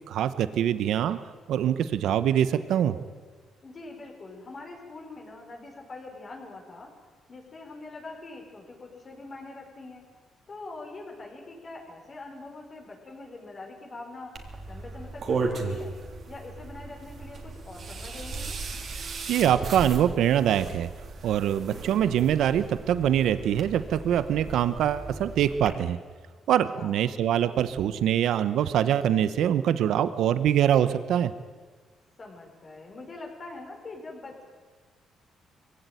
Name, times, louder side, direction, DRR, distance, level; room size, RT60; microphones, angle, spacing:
voice 1, 0.1-1.2 1.5-3.0 18.9-20.9 21.2-26.0 26.5-31.3, right 10 dB, 80° right, 13 dB, 1.0 m, -24 dB
voice 2, 3.6-6.9 7.3-10.1 10.5-14.4 14.7-16.0 16.3-18.6 26.8-27.0 32.2-34.4, left 3 dB, 40° left, 0 dB, 5.6 m, -43 dB
sound 1, 14.3-25.7, right 4 dB, 50° right, 3.4 m, -36 dB
22.5 x 16.5 x 9.2 m, 1.5 s
cardioid pair, 90°, 0 cm